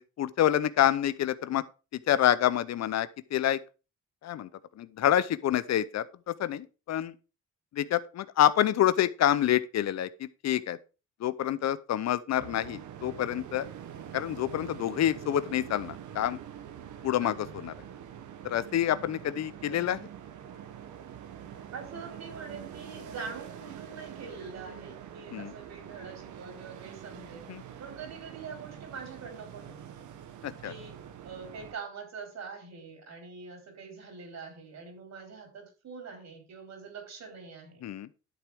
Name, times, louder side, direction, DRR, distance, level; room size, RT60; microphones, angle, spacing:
voice 1, 0.0-1.6 2.1-3.6 4.2-4.5 4.8-7.1 7.7-10.8 11.2-13.7 14.1-16.4 17.0-17.7 18.4-20.0 25.3-25.5 27.5-27.6 30.4-30.7 37.8-38.1, left 11 dB, 60° left, 0.7 m, -27 dB
sound 1, 12.4-31.7, right 9 dB, 80° right, 1.2 m, -45 dB
voice 2, 17.2-17.5 19.6-19.9 21.7-27.4 27.8-29.8 30.6-31.0 31.2-37.9, right 5 dB, 60° right, 4.2 m, -44 dB
11.5 x 6.9 x 3.5 m
cardioid pair, 90°, 30 cm